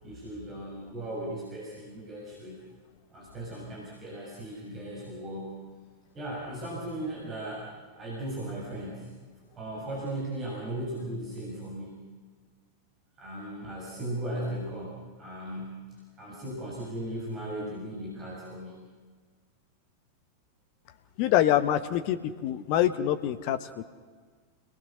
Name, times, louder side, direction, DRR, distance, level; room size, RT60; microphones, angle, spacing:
voice 1, 0.0-2.6 3.1-5.6 6.1-9.1 9.6-12.0 13.2-15.8 16.2-18.7, right 1 dB, 25° right, -4 dB, 6.7 m, -37 dB
voice 2, 21.2-23.8, left 12 dB, 45° left, 10 dB, 1.1 m, -25 dB
29.5 x 19.5 x 6.4 m, 1.5 s
figure-of-eight pair, 90°, 0 cm